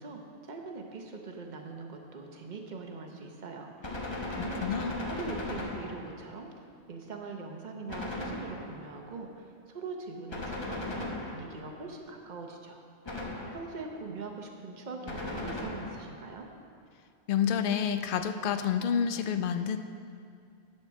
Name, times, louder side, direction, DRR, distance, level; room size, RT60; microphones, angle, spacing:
voice 1, 0.0-3.7 4.0-6.5 6.9-12.8 13.5-16.5, right 3 dB, 45° right, 2 dB, 0.9 m, -42 dB
Gunshot gunfire, 3.8-6.3 7.9-8.9 10.3-11.7 13.0-13.9 15.1-16.2, left 1 dB, 25° left, 0.9 m, -37 dB
voice 2, 4.6-5.0 17.3-19.8, left 8 dB, 60° left, 9 dB, 0.6 m, -28 dB
11.5 x 4.4 x 6.3 m, 2.4 s
omnidirectional pair, 1.2 m